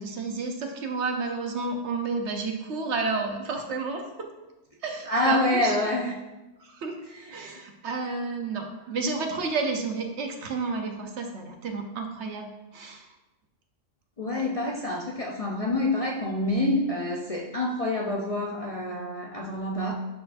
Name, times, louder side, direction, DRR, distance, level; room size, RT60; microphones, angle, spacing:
voice 1, 0.0-4.3 4.8-5.8 6.6-7.0 7.3-13.1 14.3-14.4, right 4 dB, 65° right, 4 dB, 1.0 m, -31 dB
voice 2, 5.1-6.1 7.2-7.3 14.2-19.9, left 1 dB, 40° left, -2 dB, 0.6 m, -27 dB
11.0 x 4.5 x 2.6 m, 1.0 s
omnidirectional pair, 1.3 m